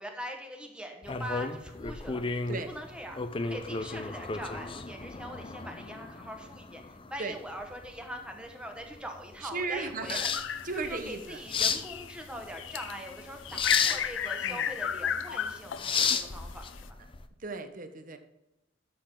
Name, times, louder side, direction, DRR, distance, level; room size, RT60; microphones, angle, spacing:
voice 1, 0.0-10.3 10.7-17.0, equal, 5° right, 3 dB, 1.4 m, -42 dB
sound 1, 1.0-17.2, left 5 dB, 30° left, 0.6 m, -34 dB
voice 2, 9.4-10.3 10.6-11.4 14.4-14.6 17.4-18.2, right 4 dB, 45° right, 8 dB, 0.9 m, -36 dB
sound 2, 10.2-11.3 11.7-16.9, left 8 dB, 85° left, 0.5 m, -34 dB
11.5 x 6.9 x 3.8 m, 0.93 s
head